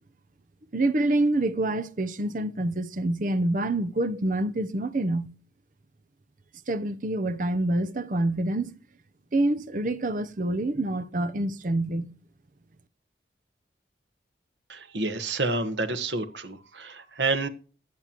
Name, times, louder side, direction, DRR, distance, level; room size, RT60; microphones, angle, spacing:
voice 1, 0.7-5.3 6.7-8.8 9.3-12.1, right 1 dB, 45° right, 0.7 m, -26 dB
voice 2, 14.7-17.5, right 3 dB, 85° right, 1.3 m, -29 dB
16.0 x 10.5 x 3.0 m
head